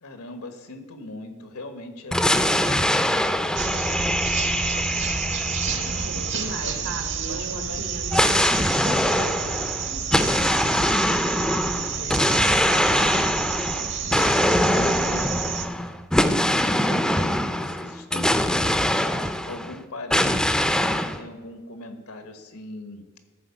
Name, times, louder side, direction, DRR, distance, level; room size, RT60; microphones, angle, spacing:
voice 1, 0.0-3.4 5.6-6.8 7.2-8.1 9.9-23.1, left 2 dB, 85° left, 7 dB, 1.4 m, -41 dB
sound 1, 2.1-6.8 8.1-19.8 20.1-21.2, left 1 dB, 5° left, 0.5 m, -23 dB
sound 2, 3.5-15.7, right 6 dB, 55° right, 1.0 m, -30 dB
voice 2, 6.0-9.6, right 2 dB, 80° right, 5 dB, 1.6 m, -36 dB
13.5 x 4.7 x 7.0 m, 1.3 s
head